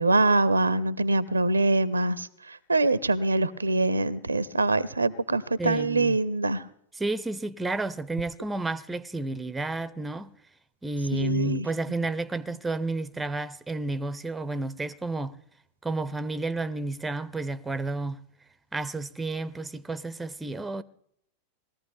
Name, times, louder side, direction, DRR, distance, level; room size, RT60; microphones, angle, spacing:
voice 1, 0.0-6.6 11.1-11.7, right 2 dB, 80° right, 0.5 m, -24 dB
voice 2, 5.6-6.2 7.0-10.3 10.8-15.4 15.8-18.2 18.7-20.8, right 2 dB, 10° right, 0.5 m, -31 dB
20.0 x 14.0 x 3.5 m
figure-of-eight pair, 90°, 0 cm